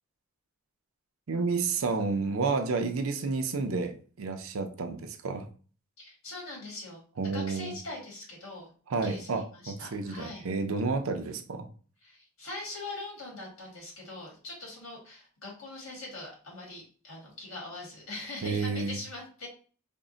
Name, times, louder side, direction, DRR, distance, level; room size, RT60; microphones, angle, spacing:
voice 1, 1.3-5.5 7.2-7.8 8.9-11.7 18.4-19.0, right 4 dB, 70° right, 6 dB, 0.5 m, -30 dB
voice 2, 6.0-8.7 9.0-10.5 12.0-19.5, left 2 dB, 75° left, -2 dB, 1.7 m, -42 dB
3.6 x 2.1 x 3.8 m, 0.40 s
head